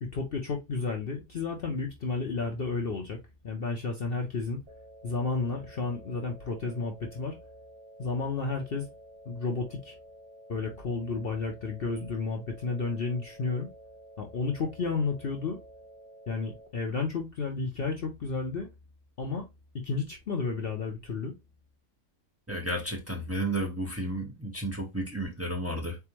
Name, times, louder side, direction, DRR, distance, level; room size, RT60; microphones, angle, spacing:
voice 1, 0.0-3.2 3.4-4.6 5.0-7.4 8.0-8.9 9.3-10.0 10.5-13.7 14.2-15.6 16.3-18.7 19.2-19.4 19.7-21.3, left 4 dB, 50° left, 0.8 m, -32 dB
sound 1, 4.7-16.7, right 1 dB, 50° right, 1.7 m, -51 dB
voice 2, 22.5-26.0, right 1 dB, 10° right, 1.0 m, -32 dB
4.2 x 3.4 x 2.9 m
omnidirectional pair, 1.5 m